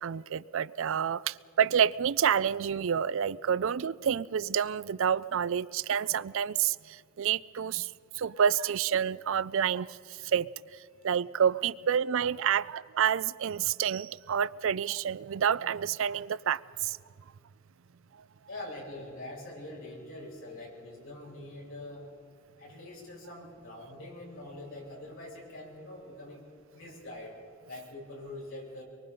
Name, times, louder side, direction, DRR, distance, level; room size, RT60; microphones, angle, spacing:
voice 1, 0.0-10.5 11.0-17.0, right 8 dB, 65° right, 0.4 m, -28 dB
voice 2, 18.5-22.1 22.6-26.4 26.7-27.4 27.7-28.8, left 1 dB, 70° left, 8.0 m, -44 dB
24.0 x 23.5 x 5.4 m
head